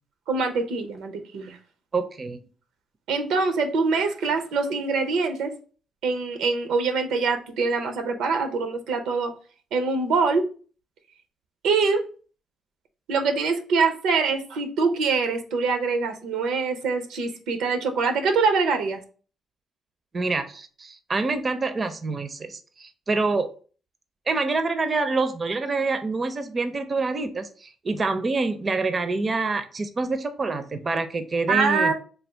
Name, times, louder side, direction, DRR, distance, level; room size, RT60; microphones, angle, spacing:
voice 1, 0.3-1.6 3.1-5.5 6.0-9.3 9.7-10.5 11.6-12.0 13.1-19.0 31.5-31.9, right 4 dB, 85° right, 6 dB, 0.6 m, -24 dB
voice 2, 1.9-2.4 20.1-23.5 24.3-31.9, right 3 dB, 35° right, 10 dB, 0.4 m, -26 dB
3.3 x 2.3 x 4.4 m, 0.39 s
cardioid pair, 90°, 0 cm